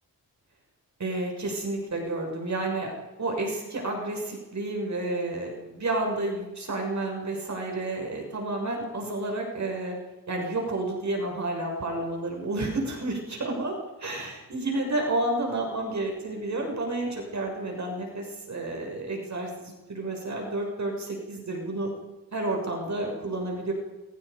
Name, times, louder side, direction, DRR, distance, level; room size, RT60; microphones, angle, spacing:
voice 1, 1.0-2.9 3.2-10.0 10.3-21.9 22.3-23.7, right 2 dB, 50° right, 1 dB, 6.5 m, -30 dB
28.5 x 23.0 x 5.3 m, 1.1 s
cardioid pair, 80°, 36 cm